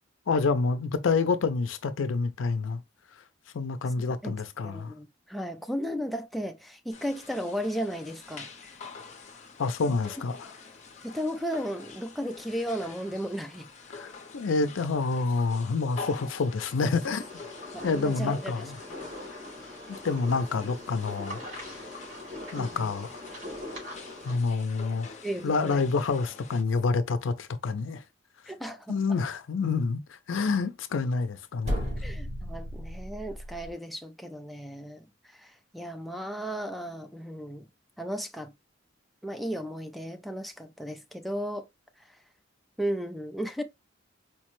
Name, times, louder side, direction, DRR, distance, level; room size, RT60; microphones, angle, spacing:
voice 1, 0.3-2.8 3.5-4.9 9.6-10.5 13.9-14.1 14.3-17.3 17.8-18.8 19.9-21.4 22.5-23.2 24.2-25.1 25.4-28.0 28.9-31.9, left 4 dB, 80° left, 0.5 m, -28 dB
voice 2, 4.6-8.5 11.0-13.7 17.7-18.7 22.6-22.8 25.2-25.8 28.5-29.0 32.0-35.0 35.3-37.7 38.0-38.5 39.2-41.7 42.8-43.6, equal, ahead, 0.3 m, -35 dB
sound 1, 6.9-26.6, left 4 dB, 40° left, 0.7 m, -46 dB
sound 2, 17.0-24.4, left 1 dB, 70° right, 2.4 m, -42 dB
sound 3, 31.6-33.7, equal, 35° right, 1.2 m, -34 dB
4.5 x 2.1 x 3.0 m
head